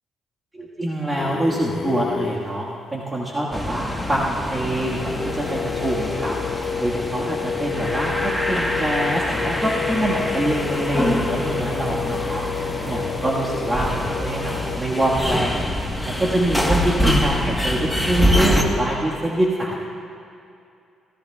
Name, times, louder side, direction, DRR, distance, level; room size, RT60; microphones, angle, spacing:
voice 1, 0.5-12.4 12.8-15.5 16.0-19.8, right 1 dB, 20° right, -5 dB, 1.7 m, -25 dB
sound 1, 1.2-2.6 4.8-15.1, left 7 dB, 55° left, 0.6 m, -29 dB
sound 2, 3.5-18.6, left 1 dB, ahead, 1.3 m, -25 dB
24.5 x 15.5 x 2.4 m, 2.5 s
cardioid pair, 90°, 0 cm